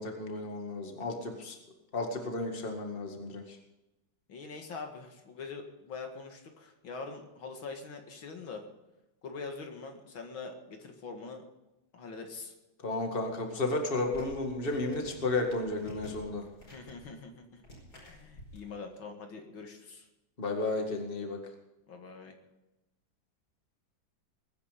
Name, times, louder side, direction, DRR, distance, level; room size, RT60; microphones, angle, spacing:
voice 1, 0.0-1.6 1.9-3.6 12.8-16.4 20.4-21.4, left 2 dB, 30° left, 3 dB, 2.1 m, -33 dB
voice 2, 4.3-8.6 9.2-11.4 11.9-12.5 16.7-17.6 18.0-20.1 21.9-22.3, left 4 dB, 75° left, 4 dB, 2.7 m, -43 dB
sound 1, 13.9-18.6, equal, 50° left, 5.5 m, -52 dB
22.0 x 9.9 x 5.2 m, 0.96 s
omnidirectional pair, 2.2 m